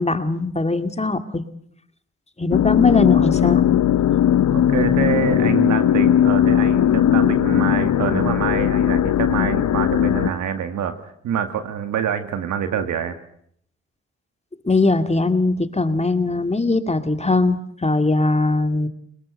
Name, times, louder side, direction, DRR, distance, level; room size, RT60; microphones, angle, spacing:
voice 1, 0.0-1.4 2.4-3.6 14.6-18.9, left 3 dB, 20° left, 8 dB, 2.4 m, -20 dB
sound 1, 2.5-10.3, left 10 dB, 70° left, 0.9 m, -18 dB
voice 2, 4.5-10.9 11.2-13.2, right 8 dB, 80° right, 8 dB, 2.2 m, -25 dB
23.0 x 21.0 x 7.9 m, 0.67 s
supercardioid pair, 45°, 29 cm